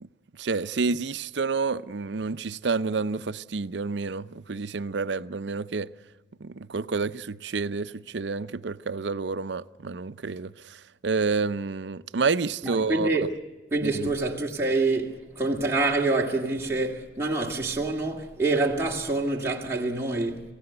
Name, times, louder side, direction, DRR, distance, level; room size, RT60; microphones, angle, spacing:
voice 1, 0.4-5.9 6.4-13.3 13.8-14.1, right 4 dB, 75° right, 0.6 m, -29 dB
voice 2, 12.6-13.2 13.7-20.4, right 2 dB, 15° right, 2.0 m, -26 dB
27.0 x 16.0 x 7.9 m
head